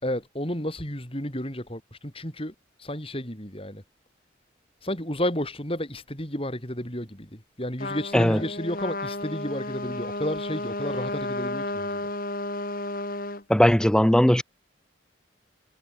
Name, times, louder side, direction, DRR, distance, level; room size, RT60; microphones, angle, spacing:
voice 1, 0.0-2.5 2.8-3.8 4.8-12.1, left 1 dB, 30° left, 5.7 m, -32 dB
Trumpet, 7.8-13.4, left 2 dB, 45° left, 4.0 m, -32 dB
voice 2, 8.1-8.4 13.5-14.4, equal, 5° left, 0.4 m, -18 dB
head